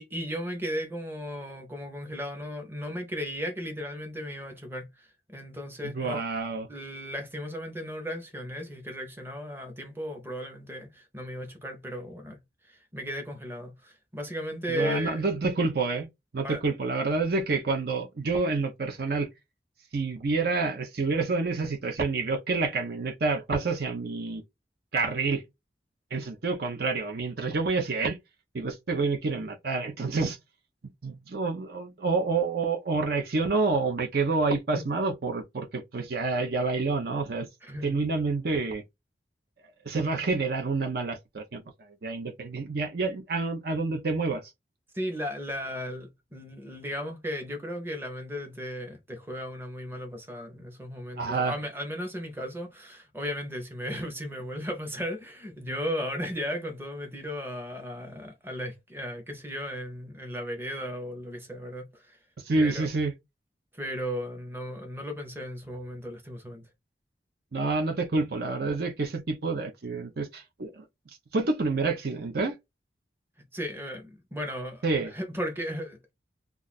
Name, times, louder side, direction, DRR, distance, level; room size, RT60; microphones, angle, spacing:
voice 1, 0.0-6.2 6.7-12.4 12.7-15.2 16.4-16.6 34.7-34.8 37.6-38.0 44.9-62.2 62.5-62.9 63.7-66.7 73.5-74.8 75.1-76.1, equal, 15° right, 0.7 m, -36 dB
voice 2, 5.8-6.7 14.7-16.1 16.3-19.3 19.9-24.4 24.9-25.4 26.1-28.2 28.5-30.4 31.0-37.5 37.8-38.8 39.8-41.6 42.0-44.4 51.2-51.6 62.5-63.1 67.5-70.8 71.3-72.6 74.8-75.1, right 3 dB, 60° right, 0.6 m, -28 dB
2.4 x 2.4 x 4.0 m
head